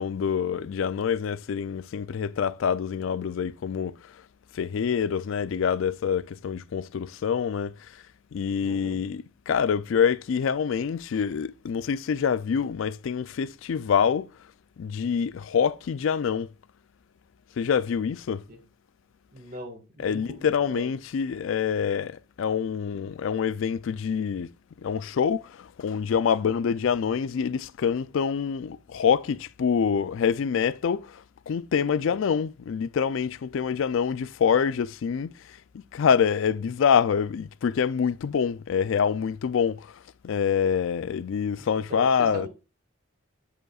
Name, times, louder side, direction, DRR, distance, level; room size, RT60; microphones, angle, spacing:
voice 1, 0.0-4.2 4.5-8.0 8.3-14.3 14.8-16.5 17.6-18.4 20.0-24.5 24.8-35.6 35.9-42.5, left 7 dB, 70° left, 0.3 m, -26 dB
voice 2, 8.6-9.0 18.5-18.6 19.3-20.9 32.1-32.4 41.5-42.5, equal, 45° right, 1.7 m, -41 dB
12.5 x 5.1 x 2.4 m
head